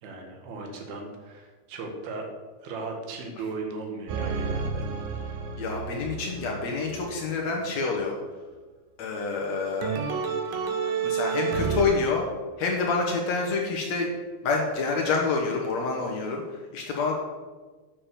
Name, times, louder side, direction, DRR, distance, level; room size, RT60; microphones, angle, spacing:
voice 1, 0.0-2.3 2.6-4.8, right 3 dB, 65° right, 3 dB, 3.3 m, -37 dB
sound 1, 4.1-7.5 9.8-11.8, right 6 dB, 80° right, 3.4 m, -30 dB
voice 2, 5.6-8.2 9.0-9.9 11.0-12.2 12.6-14.1 14.4-17.1, left 4 dB, 90° left, 0 dB, 1.5 m, -27 dB
9.6 x 7.3 x 6.9 m, 1.3 s
omnidirectional pair, 5.2 m